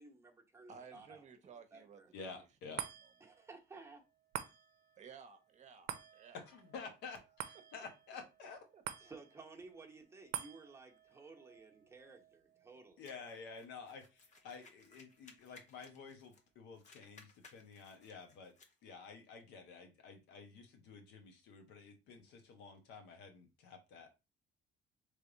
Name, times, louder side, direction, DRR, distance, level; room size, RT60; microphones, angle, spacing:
voice 1, 0.0-1.2 1.7-2.1 3.2-4.0 9.0-13.0, right 3 dB, 15° right, 1.0 m, -55 dB
voice 2, 0.7-3.1 5.0-6.4 8.7-8.8, right 6 dB, 45° right, 0.8 m, -57 dB
voice 3, 2.1-2.8 6.5-8.6 13.0-18.5 18.8-24.1, left 5 dB, 85° left, 1.1 m, -51 dB
sound 1, 2.8-15.4 15.8-15.9, right 11 dB, 75° right, 0.6 m, -50 dB
sound 2, 13.0-16.5 16.7-18.8, left 3 dB, 45° left, 0.9 m, -62 dB
3.4 x 3.3 x 3.9 m
cardioid pair, 110°, 17 cm